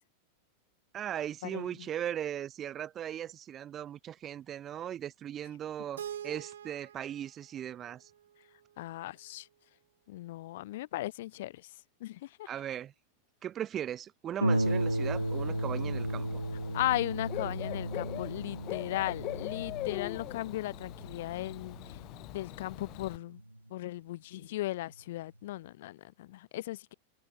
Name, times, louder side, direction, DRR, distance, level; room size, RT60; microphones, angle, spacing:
voice 1, 0.9-8.1 12.5-12.9 13.4-16.4 17.4-17.5, right 10 dB, 30° right, 0.6 m, -38 dB
Keyboard (musical), 6.0-8.9, right 10 dB, 65° right, 1.5 m, -45 dB
voice 2, 8.8-9.5 10.1-11.7 12.0-12.5 16.7-21.8 22.3-23.4 23.7-26.9, left 16 dB, 55° left, 2.6 m, -36 dB
Harp, 14.4-23.6 24.4-24.5 25.0-25.1, right 1 dB, 85° right, 0.6 m, -35 dB
Bird / Cricket, 14.5-23.2, left 19 dB, 40° left, 1.0 m, -42 dB
open air
figure-of-eight pair, 90°, 0 cm